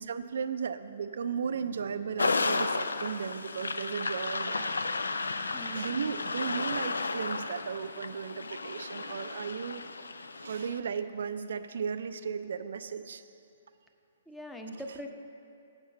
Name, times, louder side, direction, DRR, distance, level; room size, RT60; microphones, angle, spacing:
voice 1, 0.0-4.7 5.7-9.8 10.4-13.2 14.7-14.8, right 6 dB, 70° right, 11 dB, 0.4 m, -35 dB
sound 1, 2.2-10.8, left 3 dB, 90° left, 0.3 m, -33 dB
voice 2, 14.3-15.1, equal, 5° left, 3 dB, 0.7 m, -41 dB
7.4 x 5.4 x 7.3 m, 2.6 s
hypercardioid pair, 135°, 0 cm